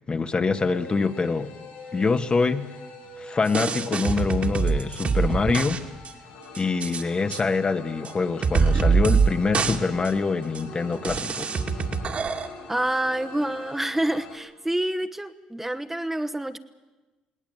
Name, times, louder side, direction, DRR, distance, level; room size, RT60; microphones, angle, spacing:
voice 1, 0.1-1.5 1.9-2.7 3.2-5.8 6.6-11.5, left 4 dB, 35° left, 9 dB, 1.3 m, -25 dB
sound 1, 0.6-14.4, left 2 dB, 75° left, 7.3 m, -43 dB
sound 2, 3.5-5.8 6.0-6.1 6.5-7.0 7.3-7.4 8.0-8.1 8.4-9.3 9.5-9.8 10.0-10.1 10.5-10.6 11.0-12.5, right 5 dB, 45° right, 2.1 m, -24 dB
voice 2, 12.7-16.6, right 1 dB, 10° right, 10 dB, 1.1 m, -27 dB
19.5 x 18.5 x 8.7 m, 1.2 s
hypercardioid pair, 60°, 3 cm